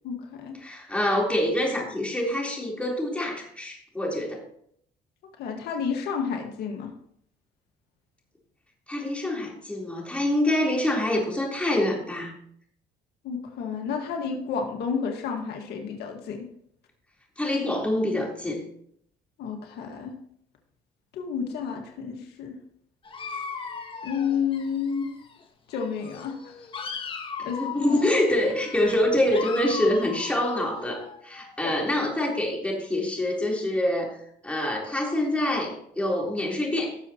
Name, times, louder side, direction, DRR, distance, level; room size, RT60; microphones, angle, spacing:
voice 1, 0.0-0.5 5.4-6.9 13.2-16.5 19.4-20.1 21.1-22.6 24.0-25.1 25.7-26.5 27.4-27.6 31.6-31.7, left 6 dB, 75° left, 2 dB, 1.8 m, -30 dB
voice 2, 0.6-4.4 8.9-12.3 17.4-18.6 27.4-34.2 34.4-37.0, left 1 dB, 5° left, -2 dB, 3.8 m, -26 dB
Dog, 23.0-25.4 25.7-31.7, left 5 dB, 30° left, 1.5 m, -38 dB
17.5 x 6.9 x 3.0 m, 0.67 s
cardioid pair, 110°, 17 cm